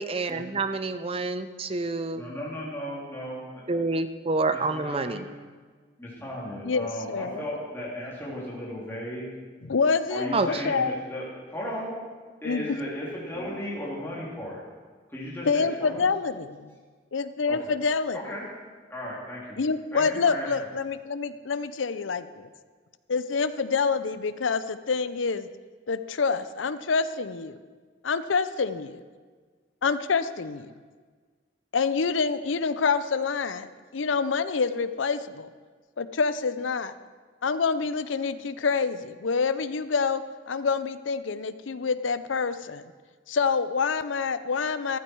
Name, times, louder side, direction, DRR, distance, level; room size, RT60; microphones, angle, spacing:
voice 1, 0.0-2.2 3.7-5.2 10.3-10.5, right 3 dB, 30° right, 10 dB, 0.6 m, -28 dB
voice 2, 2.1-3.4 3.7-3.8 4.5-5.3 6.0-9.3 10.1-11.2 11.5-11.9 12.4-14.6 15.1-16.0 17.5-17.6 18.1-18.4 18.9-19.6 19.9-20.5, equal, 10° left, -6 dB, 3.4 m, -35 dB
voice 3, 6.6-7.5 9.6-11.0 12.4-12.8 15.4-16.7 17.1-18.2 19.6-22.5 23.1-25.5 25.9-27.6 28.0-29.0 29.8-30.7 31.7-35.5 36.0-36.9 37.4-42.9 43.3-45.0, left 5 dB, 85° left, 13 dB, 0.6 m, -27 dB
14.5 x 12.5 x 4.7 m, 1.5 s
head